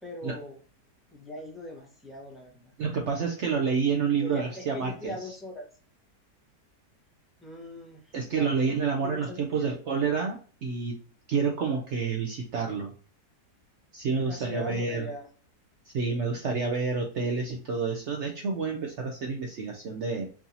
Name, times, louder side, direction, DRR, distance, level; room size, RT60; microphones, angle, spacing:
voice 1, 0.0-0.6 1.1-2.7 4.2-5.7 7.4-8.6 9.0-9.8 14.3-15.3, left 1 dB, ahead, -2 dB, 0.8 m, -41 dB
voice 2, 2.8-5.3 8.1-11.0 11.3-12.9 13.9-15.1 15.9-20.3, right 5 dB, 65° right, 2 dB, 0.7 m, -29 dB
4.6 x 2.7 x 2.7 m, 0.41 s
omnidirectional pair, 1.7 m